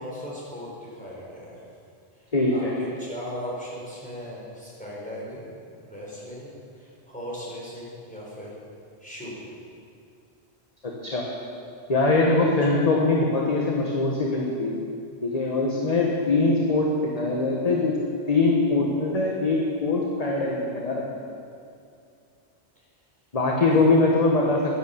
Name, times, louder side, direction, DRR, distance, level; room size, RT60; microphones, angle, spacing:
voice 1, 0.0-1.6 2.2-5.5 5.8-8.5 9.0-9.5 12.5-12.7 23.7-24.2, equal, 5° left, -6 dB, 4.3 m, -38 dB
voice 2, 2.3-2.7 11.0-11.3 11.9-14.7 15.2-16.9 17.1-18.0 18.3-21.2 23.3-24.8, left 3 dB, 35° left, -2 dB, 1.4 m, -22 dB
11.5 x 11.0 x 7.0 m, 2.4 s
omnidirectional pair, 1.1 m